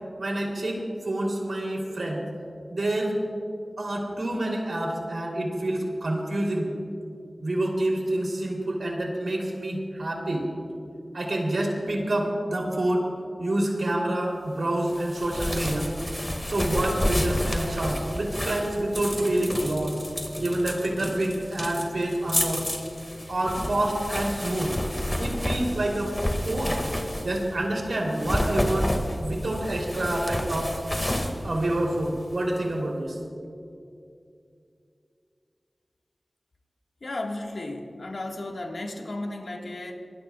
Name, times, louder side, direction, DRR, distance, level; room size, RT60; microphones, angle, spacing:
voice 1, 0.2-2.3 2.7-3.2 3.8-6.7 7.4-10.5 11.1-13.1 13.4-15.9 16.5-20.0 20.4-22.7 23.3-24.7 25.2-26.2 26.4-26.8 27.2-30.8 31.4-33.2, right 1 dB, 80° right, -1 dB, 3.2 m, -27 dB
sound 1, 14.9-27.5 28.0-32.4, left 1 dB, 25° left, 1.9 m, -30 dB
voice 2, 37.0-39.9, left 2 dB, 80° left, 1 dB, 1.7 m, -34 dB
25.0 x 20.5 x 2.4 m, 2.5 s
wide cardioid pair, 60°, 0 cm